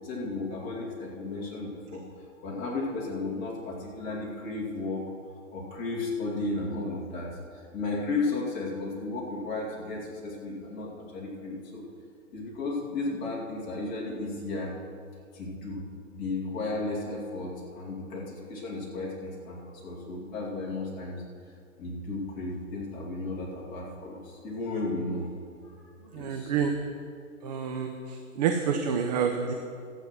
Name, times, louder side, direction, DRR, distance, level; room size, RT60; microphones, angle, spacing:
voice 1, 0.0-5.0 5.5-11.8 12.3-14.7 15.3-15.8 16.1-21.2 21.8-25.3 25.6-25.7 26.1-26.5, left 2 dB, 20° left, -4 dB, 2.5 m, -34 dB
voice 2, 26.1-26.7 27.4-27.9 28.4-29.5, right 7 dB, 30° right, 4 dB, 0.7 m, -27 dB
13.5 x 8.5 x 6.2 m, 2.3 s
hypercardioid pair, 145°, 41 cm